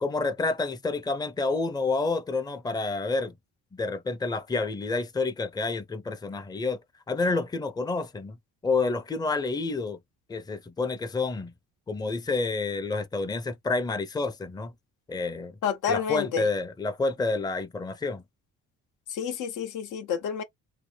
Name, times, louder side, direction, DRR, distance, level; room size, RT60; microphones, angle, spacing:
voice 1, 0.0-3.3 3.7-6.8 7.1-8.4 8.6-10.0 10.3-11.5 11.9-14.7 15.1-15.5 15.9-18.2, left 3 dB, 15° left, 0.5 m, -29 dB
voice 2, 15.6-16.5 19.1-20.4, left 7 dB, 80° left, 0.8 m, -29 dB
3.2 x 2.1 x 3.2 m
cardioid pair, 90°, 30 cm